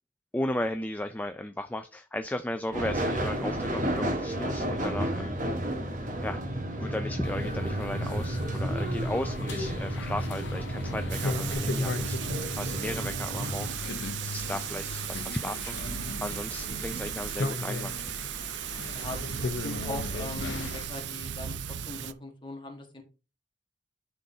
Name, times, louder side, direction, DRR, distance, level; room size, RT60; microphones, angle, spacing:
voice 1, 0.3-5.4 6.2-6.4 6.8-18.0, left 1 dB, 10° left, 0.3 m, -35 dB
sound 1, 2.7-13.7, right 1 dB, 40° right, 1.2 m, -32 dB
sound 2, 7.2-20.9, left 3 dB, 75° left, 0.7 m, -37 dB
Thunder / Rain, 11.1-22.1, right 10 dB, 65° right, 0.4 m, -36 dB
voice 2, 14.7-15.0 18.9-21.5 21.9-23.0, left 2 dB, 25° left, 1.4 m, -40 dB
11.5 x 3.9 x 2.7 m
head